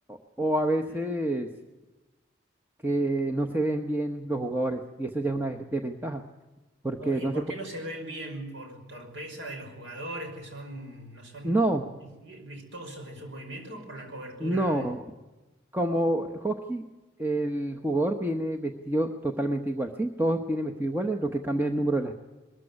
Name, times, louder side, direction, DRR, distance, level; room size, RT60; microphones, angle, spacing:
voice 1, 0.1-1.5 2.8-6.2 6.8-7.4 11.4-11.8 14.4-15.0 15.7-16.8 17.2-22.2, right 1 dB, 10° right, 3 dB, 0.9 m, -28 dB
voice 2, 7.0-14.9, right 1 dB, 85° right, 4 dB, 5.6 m, -40 dB
21.5 x 14.5 x 9.8 m, 1.1 s
head